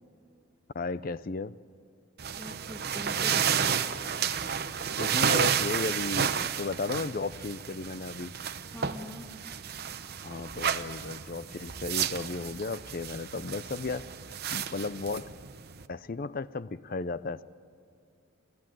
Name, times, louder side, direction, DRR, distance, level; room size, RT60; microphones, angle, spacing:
voice 1, 0.7-1.5 5.0-8.3 10.2-14.1 14.5-15.3 15.9-17.4, left 3 dB, 40° left, 16 dB, 0.5 m, -34 dB
sound 1, 2.2-15.8, right 7 dB, 45° right, 0.8 m, -31 dB
voice 2, 2.3-3.8 8.7-9.3, equal, 5° left, 1 dB, 1.5 m, -43 dB
30.0 x 13.5 x 9.1 m, 2.6 s
head